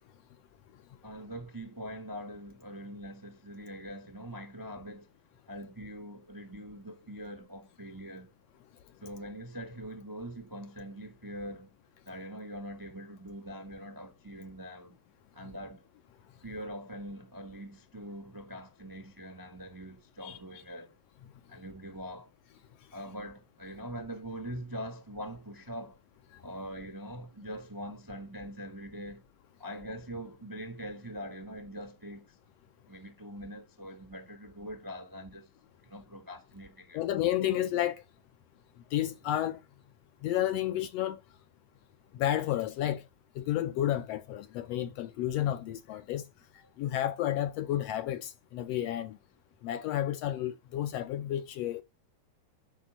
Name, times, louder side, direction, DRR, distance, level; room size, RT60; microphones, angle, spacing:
voice 1, 1.0-5.1 5.5-8.3 9.0-11.7 12.0-14.9 15.3-15.9 16.4-20.9 21.5-22.3 22.9-26.0 26.4-29.2 29.6-32.4 32.9-35.5 35.8-37.0 46.6-46.7, equal, 30° right, 0.3 m, -43 dB
voice 2, 36.9-38.0 38.9-39.6 40.2-41.2 42.1-43.0 43.3-46.2 46.8-49.2 49.6-51.8, left 12 dB, 75° left, 1.6 m, -31 dB
11.5 x 5.1 x 5.1 m
omnidirectional pair, 3.3 m